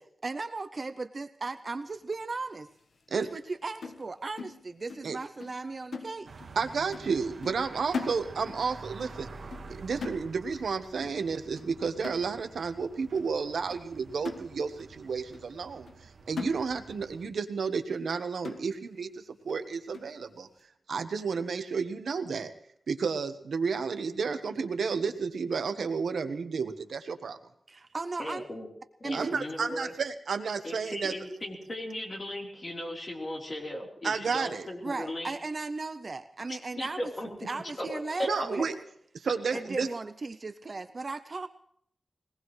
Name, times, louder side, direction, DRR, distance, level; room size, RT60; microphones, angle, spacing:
voice 1, 0.2-2.7 3.2-6.3 7.7-8.1 27.7-28.4 29.0-29.3 34.8-37.0 37.5-38.6 39.5-41.5, right 3 dB, 35° right, 10 dB, 0.6 m, -36 dB
sound 1, 3.8-5.1 5.4-5.6 5.9-6.6 6.9-7.2 7.4-8.7 9.0-9.2 9.5-9.8 10.0-10.7 11.0-11.3 11.6-11.7 12.0-12.7 13.2-13.3 13.7-13.8 14.2-14.9 15.3-15.4 15.9-16.0 16.4-17.1 17.4-17.5 17.9-18.1 18.4-19.0 19.5-19.6 19.9-20.2, left 5 dB, 80° left, 1.3 m, -41 dB
sound 2, 6.2-17.3, right 3 dB, 70° right, 1.6 m, -49 dB
voice 2, 6.6-9.3 9.7-15.9 16.3-20.5 20.9-22.5 22.9-27.4 29.1-31.1 34.0-34.7 38.3-38.7 39.1-39.9, right 5 dB, 85° right, 7 dB, 1.2 m, -31 dB
voice 3, 28.2-28.7 29.0-29.9 30.6-35.3 36.5-37.3 37.6-38.5, left 1 dB, 30° left, -1 dB, 3.7 m, -37 dB
21.5 x 19.0 x 3.2 m, 0.70 s
wide cardioid pair, 165°, 0 cm